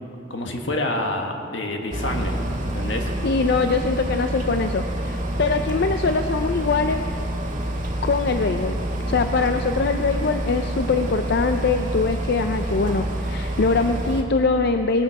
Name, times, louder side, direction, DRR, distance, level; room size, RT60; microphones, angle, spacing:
voice 1, 0.3-2.4 2.6-3.1, left 1 dB, 80° left, 3 dB, 1.6 m, -27 dB
sound 1, 1.9-14.2, right 1 dB, 40° right, 1.7 m, -27 dB
voice 2, 3.2-7.0 8.0-8.8 9.1-15.0, left 4 dB, 60° left, 7 dB, 0.5 m, -22 dB
18.0 x 12.0 x 4.8 m, 2.7 s
head